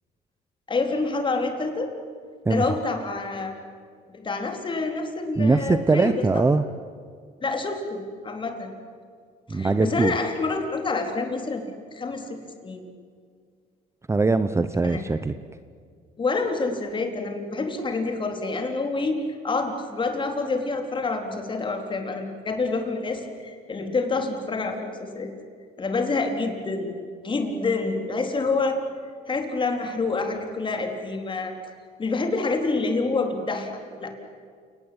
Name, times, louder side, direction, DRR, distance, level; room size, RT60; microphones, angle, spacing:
voice 1, 0.7-1.9 2.5-3.5 4.1-6.4 7.4-8.7 9.5-12.8 14.8-15.0 16.2-25.3 25.8-26.9 27.2-28.8 29.3-31.5 32.0-33.7 34.0-34.1, left 3 dB, 30° left, 4 dB, 3.9 m, -27 dB
voice 2, 5.4-6.6 9.5-10.2 14.1-15.3, right 3 dB, 15° right, 11 dB, 0.8 m, -21 dB
29.0 x 19.0 x 8.9 m, 2.1 s
cardioid pair, 110°, 17 cm